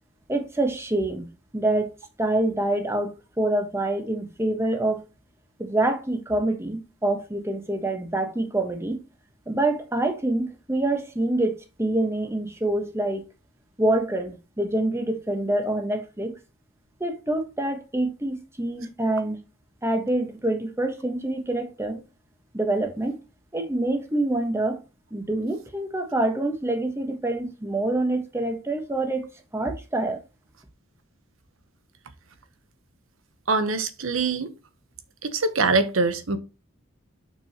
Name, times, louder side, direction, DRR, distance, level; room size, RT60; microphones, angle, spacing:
voice 1, 0.3-1.3 1.5-1.9 2.2-5.0 5.6-9.0 9.5-13.2 13.8-16.3 17.0-19.4 19.8-22.0 22.5-23.2 23.5-24.8 25.1-29.3 29.5-30.2, right 2 dB, 15° right, 1.2 m, -26 dB
voice 2, 33.5-34.5 35.2-36.4, right 3 dB, 80° right, 1.0 m, -23 dB
7.0 x 6.1 x 2.9 m
head